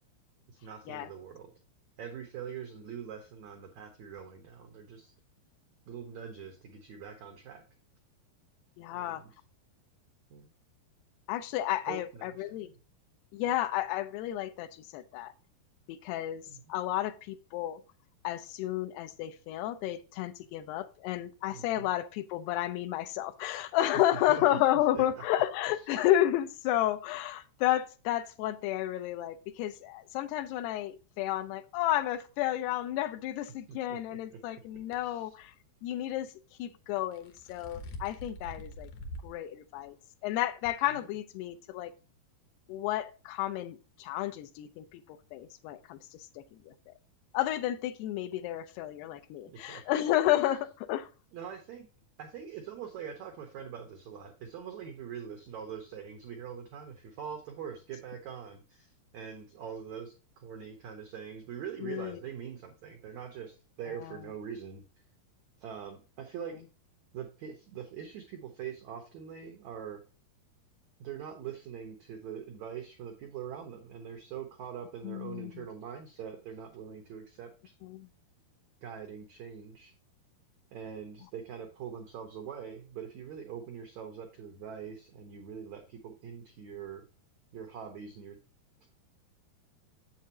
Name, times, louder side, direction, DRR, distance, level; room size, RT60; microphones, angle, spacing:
voice 1, 0.5-1.5 2.0-5.1 5.9-7.6 8.9-9.3 10.3-10.5 11.9-12.6 13.4-13.5 16.5-16.7 21.5-21.9 24.3-24.4 24.9-25.2 25.7-25.8 33.7-34.0 34.3-34.4 34.7-35.3 41.0-41.1 49.5-50.0 51.3-51.9 52.2-64.8 65.6-66.6 67.1-70.0 71.0-77.7 78.8-79.9 80.7-87.0 87.5-88.4 88.8-88.9, right 8 dB, 85° right, 3 dB, 1.6 m, -43 dB
voice 2, 8.8-9.2 11.3-12.7 13.3-15.3 15.9-16.4 16.7-17.8 18.2-35.5 35.8-36.3 36.6-38.9 39.2-40.0 40.2-41.9 42.7-45.0 45.3-46.0 46.7-46.8 47.3-51.1 61.8-62.2 75.0-75.7 77.8-78.1, left 13 dB, 85° left, 10 dB, 2.7 m, -31 dB
sound 1, 34.7-35.0 37.0-39.3 39.8-39.9 40.6-40.7, equal, 70° left, 1.9 m, -44 dB
7.5 x 7.2 x 2.8 m, 0.34 s
omnidirectional pair, 4.6 m